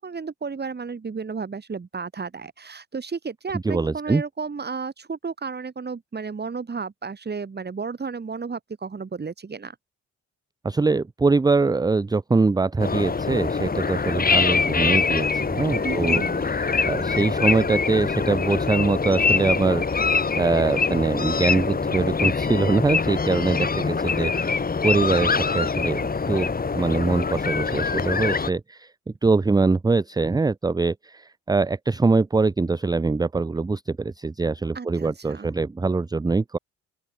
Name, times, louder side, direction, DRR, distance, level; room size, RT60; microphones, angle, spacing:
voice 1, 0.0-9.8 15.8-16.5 34.7-35.5, right 5 dB, 35° right, 7.1 m, -33 dB
voice 2, 3.6-4.2 10.6-16.2 16.6-28.9 29.2-36.6, right 3 dB, 15° right, 0.6 m, -23 dB
sound 1, 12.8-28.5, left 4 dB, 30° left, 3.2 m, -24 dB
open air
cardioid pair, 90°, 30 cm